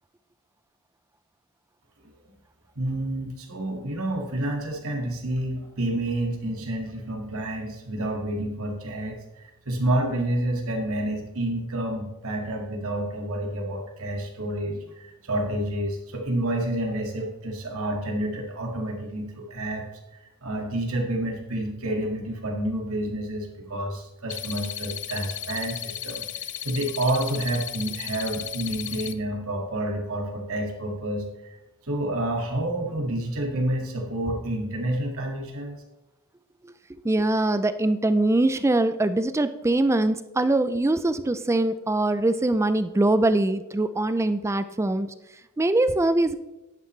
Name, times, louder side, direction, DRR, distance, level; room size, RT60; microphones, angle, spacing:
voice 1, 2.8-19.9 20.4-31.6 31.8-35.8, right 1 dB, 65° right, 1 dB, 2.0 m, -29 dB
sound 1, 24.3-29.1, left 12 dB, 55° left, 0.5 m, -35 dB
voice 2, 37.0-45.1 45.6-46.4, right 2 dB, 10° right, 12 dB, 0.3 m, -23 dB
10.5 x 9.4 x 3.2 m, 0.97 s
head